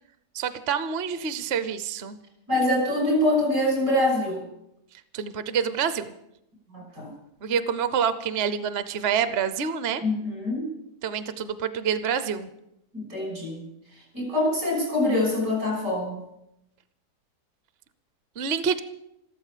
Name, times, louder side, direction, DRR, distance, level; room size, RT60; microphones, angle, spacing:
voice 1, 0.3-2.2 5.1-6.1 7.4-10.0 11.0-12.5 18.4-18.8, right 7 dB, 50° right, 12 dB, 0.9 m, -27 dB
voice 2, 2.5-4.4 6.7-7.1 10.0-10.7 12.9-13.6 14.1-16.2, left 1 dB, 80° right, 1 dB, 6.8 m, -24 dB
14.0 x 13.0 x 7.4 m, 0.83 s
omnidirectional pair, 1.7 m